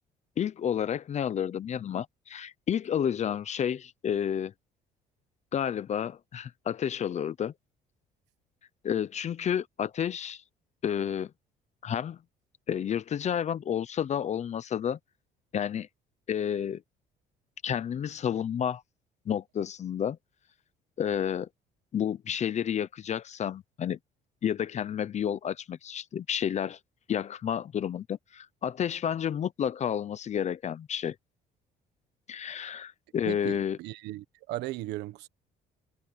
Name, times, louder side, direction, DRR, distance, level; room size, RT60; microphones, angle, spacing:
voice 1, 0.4-4.5 5.5-7.5 8.8-10.4 10.8-11.3 11.8-12.2 12.7-15.0 15.5-15.9 16.3-16.8 17.6-18.8 19.3-20.2 21.0-21.5 21.9-24.0 24.4-26.8 27.1-31.1 32.3-33.8, left 9 dB, 40° left, 0.8 m, -30 dB
voice 2, 33.2-35.3, right 17 dB, 90° right, 1.3 m, -37 dB
cardioid pair, 110°, 17 cm